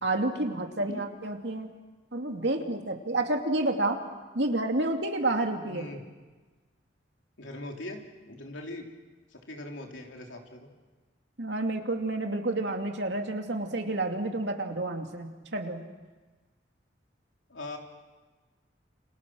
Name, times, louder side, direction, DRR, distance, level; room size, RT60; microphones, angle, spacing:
voice 1, 0.0-1.7 2.1-4.0 4.3-5.8 11.4-15.8, right 2 dB, 65° right, 3 dB, 2.6 m, -29 dB
voice 2, 5.6-6.0 7.4-8.9 9.3-10.7 17.5-17.8, left 1 dB, 90° left, 2 dB, 3.6 m, -41 dB
29.0 x 26.5 x 6.3 m, 1.3 s
head